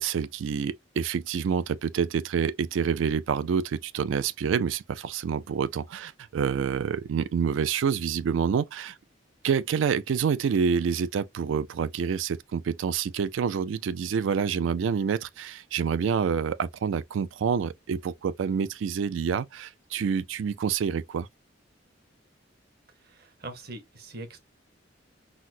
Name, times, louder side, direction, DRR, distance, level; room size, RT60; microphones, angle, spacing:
voice 1, 0.0-8.9 9.4-21.3, right 6 dB, 80° right, 0.3 m, -27 dB
voice 2, 23.0-24.4, right 2 dB, 55° right, 0.9 m, -42 dB
4.1 x 2.0 x 2.6 m
head